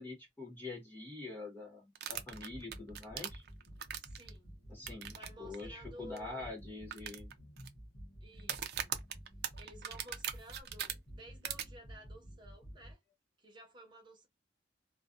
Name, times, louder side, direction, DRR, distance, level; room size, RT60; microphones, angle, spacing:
voice 1, 0.0-3.4 4.7-7.3, left 3 dB, 10° left, 0.6 m, -45 dB
sound 1, 2.0-4.3 4.9-5.3 5.5-5.6 6.2-6.3 6.9-7.7 8.4-10.9 11.4-11.6, right 9 dB, 60° right, 0.4 m, -39 dB
sound 2, 2.1-12.9, equal, 55° left, 0.7 m, -52 dB
voice 2, 4.0-4.6 5.1-6.5 8.2-9.0 9.6-13.0 13.4-14.3, equal, 25° right, 1.0 m, -55 dB
2.4 x 2.2 x 2.4 m
head